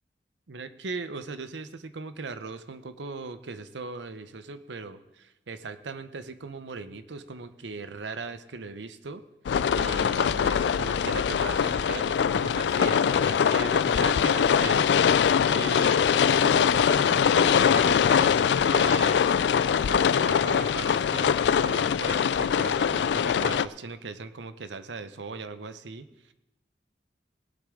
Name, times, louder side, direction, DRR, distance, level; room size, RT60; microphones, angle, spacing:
voice 1, 0.5-9.2 9.8-14.9 15.4-19.3 19.8-26.3, right 4 dB, 85° right, 11 dB, 0.7 m, -38 dB
sound 1, 9.5-23.7, left 7 dB, 75° left, 0.3 m, -23 dB
19.5 x 8.4 x 3.7 m, 0.97 s
head